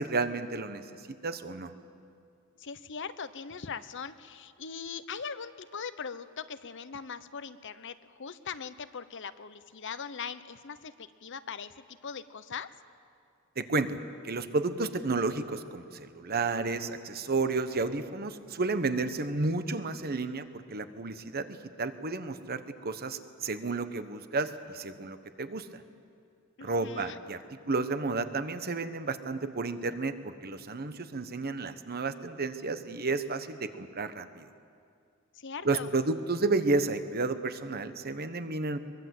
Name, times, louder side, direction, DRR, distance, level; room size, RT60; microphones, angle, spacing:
voice 1, 0.0-1.7 13.6-14.0 14.2-21.5 21.8-25.8 26.6-34.5 35.6-38.8, right 3 dB, 45° right, 10 dB, 1.1 m, -32 dB
voice 2, 2.6-12.7 26.6-27.2 35.3-35.9, left 6 dB, 60° left, 13 dB, 0.9 m, -40 dB
23.0 x 22.5 x 7.8 m, 2.4 s
head